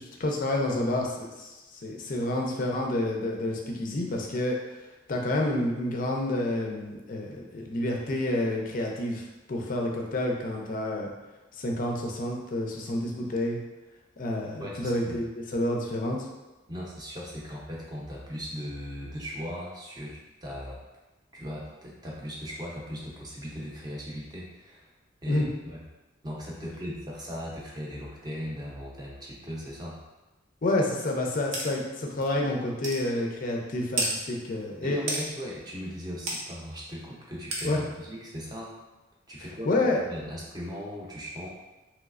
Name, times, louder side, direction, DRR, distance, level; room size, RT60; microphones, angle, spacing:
voice 1, 0.0-4.6 5.1-11.1 11.5-13.6 14.2-16.3 25.3-25.5 30.6-35.2 37.6-37.8 39.7-40.0, left 1 dB, 45° left, 0 dB, 0.4 m, -29 dB
voice 2, 14.6-15.2 16.7-20.8 21.3-24.9 25.2-25.8 26.2-30.0 34.8-38.7 39.3-39.7 40.1-41.5, equal, 20° right, -4 dB, 0.6 m, -38 dB
sound 1, 31.5-31.7 32.2-32.3 32.8-33.0 34.0-34.1 35.1-35.2 36.3-36.4 37.5-37.7, right 2 dB, 75° right, 0.7 m, -29 dB
3.1 x 3.0 x 2.4 m, 1.1 s
head